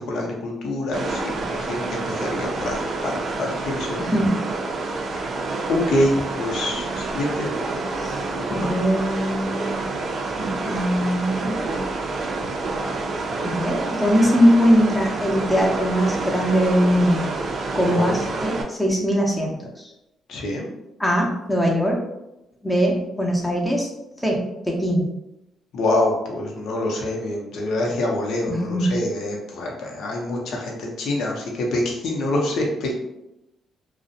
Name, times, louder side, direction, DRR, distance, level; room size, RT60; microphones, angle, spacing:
voice 1, 0.0-4.2 5.7-7.5 8.5-8.7 17.9-18.2 20.3-20.7 25.7-32.9, left 1 dB, 75° left, -1 dB, 0.6 m, -26 dB
sound 1, 0.9-18.6, right 3 dB, 55° right, 0.4 m, -28 dB
voice 2, 4.0-4.4 8.0-8.2 8.5-9.8 10.4-11.6 13.4-17.3 17.7-19.9 21.0-22.0 22.6-23.9 24.2-25.1 28.5-28.9, equal, 5° left, -1 dB, 0.6 m, -21 dB
2.4 x 2.0 x 2.6 m, 0.90 s
cardioid pair, 90°, 0 cm